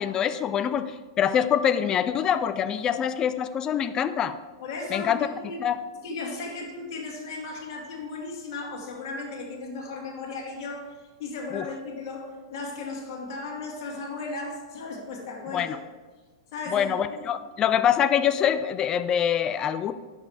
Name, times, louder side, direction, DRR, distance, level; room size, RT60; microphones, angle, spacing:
voice 1, 0.0-4.4 4.9-5.2 5.6-5.8 11.5-11.7 15.5-15.8 16.7-19.9, left 9 dB, 30° left, 11 dB, 0.4 m, -25 dB
voice 2, 4.6-5.6 6.0-10.9 11.2-15.7 16.5-17.2, left 3 dB, 55° left, -2 dB, 2.2 m, -36 dB
10.5 x 6.0 x 3.6 m, 1.3 s
hypercardioid pair, 105°, 2 cm